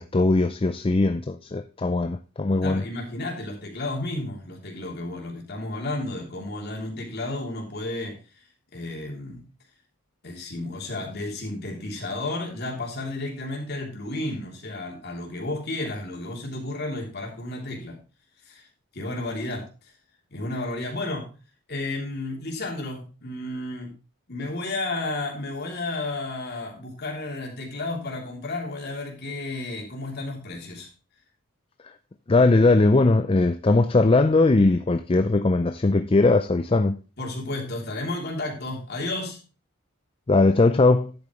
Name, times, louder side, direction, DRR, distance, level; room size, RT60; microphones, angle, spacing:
voice 1, 0.0-2.8 32.3-37.0 40.3-41.1, left 3 dB, 25° left, 0.4 m, -20 dB
voice 2, 2.6-8.4 8.7-9.4 10.2-18.0 18.4-18.7 18.9-19.9 20.3-21.3 21.7-23.9 24.3-30.9 37.2-39.4, left 2 dB, 50° left, 3.2 m, -32 dB
11.0 x 8.3 x 3.1 m
head